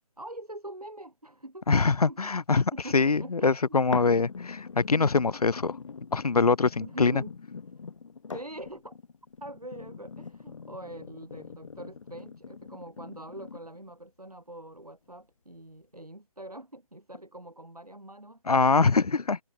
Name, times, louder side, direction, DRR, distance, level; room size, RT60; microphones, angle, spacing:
voice 1, 0.2-1.7 2.0-2.2 2.7-4.1 6.8-7.3 8.3-9.0 9.4-19.0, right 1 dB, 90° right, 4.4 m, -44 dB
voice 2, 1.7-4.3 4.7-5.8 6.1-7.2 18.5-19.4, left 4 dB, 85° left, 0.5 m, -23 dB
sound 1, 3.9-13.9 14.5-14.6, left 5 dB, 55° left, 1.7 m, -42 dB
figure-of-eight pair, 145°, 19 cm